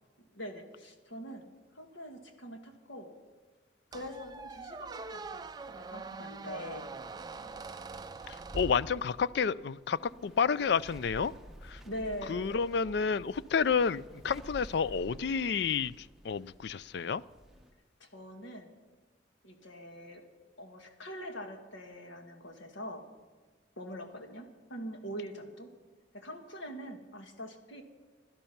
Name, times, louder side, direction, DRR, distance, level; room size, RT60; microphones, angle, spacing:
voice 1, 0.3-3.1 3.9-6.9 11.8-12.5 18.0-18.7 19.4-20.2 20.6-23.1 23.8-25.7 26.1-27.8, equal, 75° left, 1.9 m, -43 dB
Squeak, 3.9-9.4, right 3 dB, 20° right, 0.3 m, -43 dB
sound 1, 6.5-17.7, equal, ahead, 0.9 m, -53 dB
voice 2, 8.3-11.3 11.6-11.8 12.3-17.2, left 6 dB, 60° left, 0.3 m, -30 dB
17.0 x 12.0 x 5.9 m
head